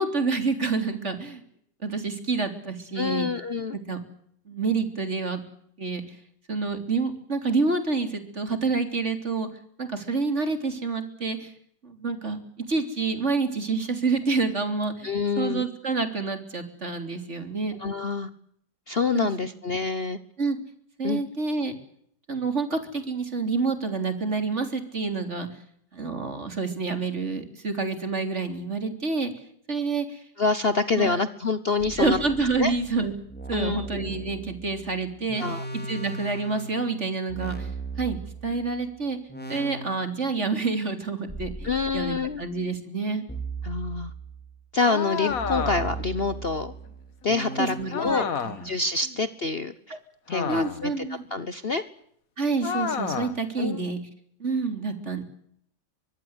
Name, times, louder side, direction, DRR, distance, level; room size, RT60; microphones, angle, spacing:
voice 1, 0.0-1.4 1.8-3.3 3.9-4.0 4.5-5.4 5.8-6.0 6.5-9.5 9.8-11.5 11.8-12.4 12.7-17.8 19.1-19.6 20.4-20.6 21.0-21.8 22.3-25.5 25.9-29.3 29.7-30.2 31.0-31.2 32.0-33.1 33.5-35.4 35.9-37.7 38.0-39.2 39.5-43.2 47.6-48.7 49.9-50.0 50.5-51.2 52.4-54.0 54.4-55.2, right 4 dB, 40° right, 8 dB, 3.8 m, -28 dB
voice 2, 2.9-3.8 15.0-15.7 17.8-18.3 18.9-20.2 21.0-21.2 30.4-32.2 32.6-32.7 33.5-33.9 35.4-35.6 41.6-42.4 43.6-44.1 44.7-46.7 47.2-48.3 48.6-50.0 50.3-51.1 51.3-51.8 53.6-53.8, left 4 dB, 40° left, 13 dB, 1.2 m, -26 dB
sound 1, 31.8-38.8 39.3-40.4 41.3-42.5 43.3-44.5 45.3-48.1, right 3 dB, 5° left, 5.0 m, -37 dB
sound 2, 44.9-46.1 47.9-48.7 50.3-51.0 52.6-53.4, left 6 dB, 55° left, 1.8 m, -30 dB
24.5 x 21.5 x 8.1 m, 0.69 s
omnidirectional pair, 1.8 m